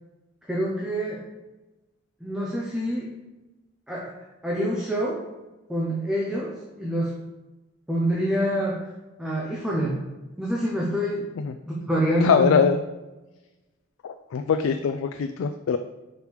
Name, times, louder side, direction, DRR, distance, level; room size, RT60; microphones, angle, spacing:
voice 1, 0.5-1.2 2.2-3.1 3.9-4.1 4.4-5.2 5.7-7.2 7.9-8.8 9.2-10.1 10.4-11.3 11.9-12.5, equal, 5° right, -4 dB, 0.8 m, -26 dB
voice 2, 12.2-12.8 14.0-15.8, left 6 dB, 75° left, 8 dB, 0.3 m, -22 dB
5.1 x 4.8 x 4.7 m, 1.1 s
head